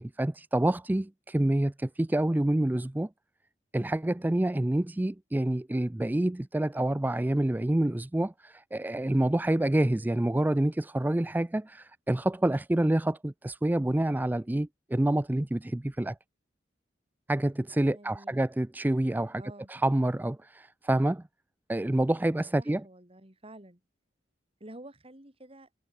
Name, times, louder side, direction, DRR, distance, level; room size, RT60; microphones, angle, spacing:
voice 1, 0.0-3.1 3.7-16.2 17.3-19.4 19.7-21.2 21.7-22.8, right 1 dB, 10° right, 0.4 m, -27 dB
voice 2, 17.9-18.5 19.4-19.7 22.6-23.8 24.6-25.7, right 1 dB, 30° right, 3.8 m, -49 dB
head